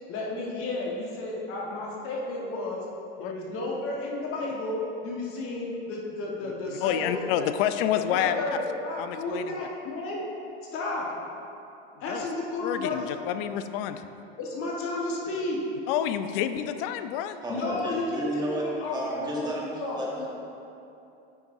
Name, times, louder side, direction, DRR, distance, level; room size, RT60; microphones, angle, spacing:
voice 1, 0.1-2.8 3.2-7.2 7.9-10.3 10.7-11.1 12.0-13.1 14.4-15.6 17.5-20.3, left 2 dB, 45° left, -3 dB, 1.4 m, -32 dB
voice 2, 6.8-8.4 9.0-9.6 12.1-12.2 12.6-14.0 15.9-17.4, left 10 dB, 65° left, 11 dB, 0.5 m, -28 dB
voice 3, 17.4-20.3, right 1 dB, 15° right, -4 dB, 1.4 m, -32 dB
9.4 x 5.2 x 2.6 m, 2.8 s
hypercardioid pair, 95°, 30 cm